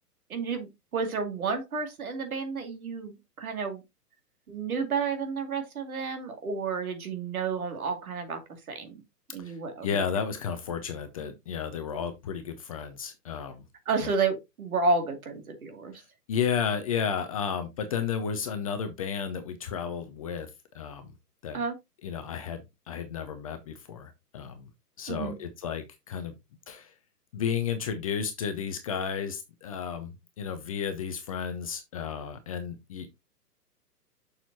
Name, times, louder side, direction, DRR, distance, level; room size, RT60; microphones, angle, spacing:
voice 1, 0.3-3.8 4.5-9.0 9.3-10.0 13.9-16.0 21.5-21.8 25.1-25.4, right 4 dB, 60° right, 2.4 m, -31 dB
voice 2, 9.8-13.7 14.0-14.1 15.9-16.0 16.3-20.5 20.7-21.1 21.4-21.6 22.0-24.7 25.0-26.3 26.7-26.9 27.3-33.1, left 7 dB, 20° left, 0.6 m, -33 dB
7.0 x 6.5 x 2.7 m
figure-of-eight pair, 120°, 48 cm